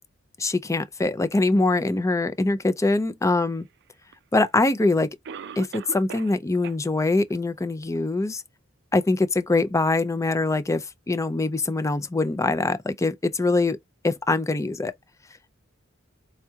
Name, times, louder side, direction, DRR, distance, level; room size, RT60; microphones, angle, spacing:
voice 1, 0.4-3.7 4.3-5.1 5.6-8.4 8.9-13.8 14.0-14.9, left 2 dB, 15° left, 0.4 m, -23 dB
Cough, 4.1-4.2 5.2-6.4 6.6-6.8 7.3-7.4 8.0-8.1, right 6 dB, 55° right, 0.4 m, -38 dB
4.5 x 2.3 x 2.7 m
head